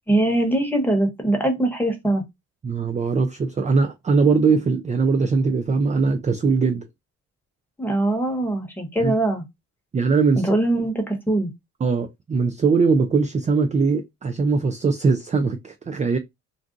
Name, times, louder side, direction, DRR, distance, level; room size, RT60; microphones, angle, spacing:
voice 1, 0.1-2.2 7.8-9.4 10.4-11.5, right 1 dB, 5° left, 1.2 m, -22 dB
voice 2, 2.6-6.9 9.0-9.1 9.9-10.5 11.8-16.2, right 4 dB, 25° right, 0.4 m, -21 dB
2.6 x 2.3 x 3.7 m
cardioid pair, 90°, 30 cm